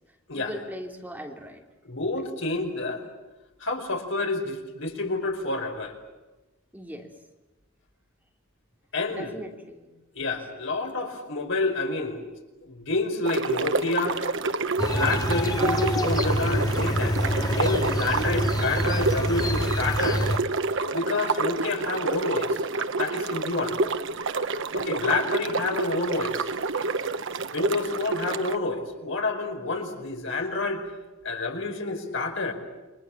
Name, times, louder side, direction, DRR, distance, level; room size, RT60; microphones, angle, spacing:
voice 1, 0.3-1.6 6.7-7.1 9.1-9.9 24.7-25.0, equal, 10° right, 2 dB, 3.0 m, -39 dB
voice 2, 1.8-3.0 3.6-5.9 8.9-9.4 10.1-12.2 12.6-14.2 14.9-20.3 20.9-22.6 23.0-23.8 24.7-26.5 27.5-30.8 31.2-32.5, left 3 dB, 65° left, 4 dB, 5.0 m, -28 dB
sound 1, 13.3-28.6, right 3 dB, 65° right, 1.2 m, -28 dB
sound 2, 14.8-20.4, equal, 20° left, 2.2 m, -26 dB
29.0 x 25.0 x 7.3 m, 1.1 s
head